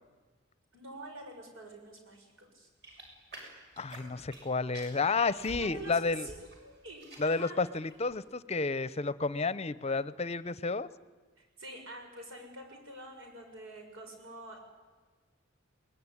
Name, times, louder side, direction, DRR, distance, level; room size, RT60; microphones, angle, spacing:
voice 1, 0.7-2.7 5.6-7.6 11.4-14.6, right 2 dB, 90° right, 3 dB, 5.8 m, -47 dB
sound 1, 2.8-4.5 4.7-6.6 6.9-7.4 7.8-8.1, right 1 dB, 55° right, 6.6 m, -49 dB
voice 2, 3.8-6.3 7.2-10.9, left 4 dB, 30° left, 16 dB, 0.7 m, -31 dB
22.0 x 19.5 x 9.8 m, 1.3 s
head